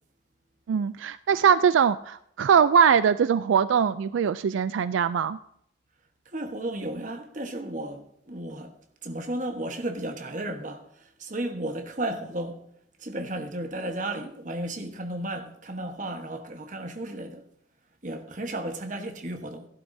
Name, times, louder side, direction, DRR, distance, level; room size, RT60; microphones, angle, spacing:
voice 1, 0.7-5.4, right 7 dB, 80° right, 0.3 m, -22 dB
voice 2, 6.3-8.7 9.0-10.8 11.2-12.6 13.0-17.4 18.0-19.7, right 1 dB, 40° right, 1.3 m, -33 dB
16.0 x 11.5 x 2.7 m
head